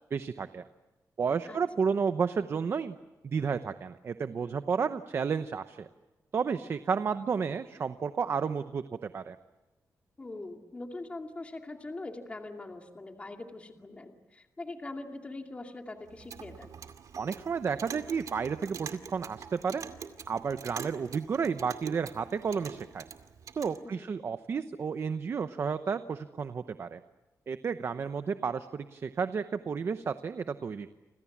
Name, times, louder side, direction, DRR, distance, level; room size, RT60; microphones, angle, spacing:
voice 1, 0.1-0.6 1.2-3.0 3.2-5.9 6.3-9.4 17.2-19.8 20.3-23.0 23.5-27.0 27.5-30.9, right 6 dB, 45° right, 10 dB, 0.8 m, -32 dB
voice 2, 10.2-16.7 23.8-24.1, left 2 dB, 20° left, 3 dB, 2.5 m, -42 dB
Clock, 16.1-23.8, right 7 dB, 70° right, 2.3 m, -45 dB
30.0 x 27.0 x 7.3 m, 1.1 s
wide cardioid pair, 170°, 6 cm